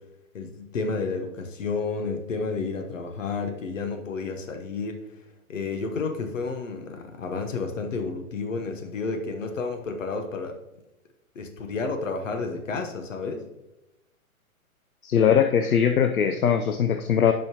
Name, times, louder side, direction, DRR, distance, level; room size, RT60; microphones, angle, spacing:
voice 1, 0.3-5.0 5.5-10.6 11.3-13.4, left 4 dB, 60° left, 5 dB, 1.2 m, -31 dB
voice 2, 15.0-17.3, left 8 dB, 75° left, 8 dB, 0.6 m, -21 dB
10.5 x 5.5 x 2.9 m, 0.96 s
figure-of-eight pair, 120°, 43 cm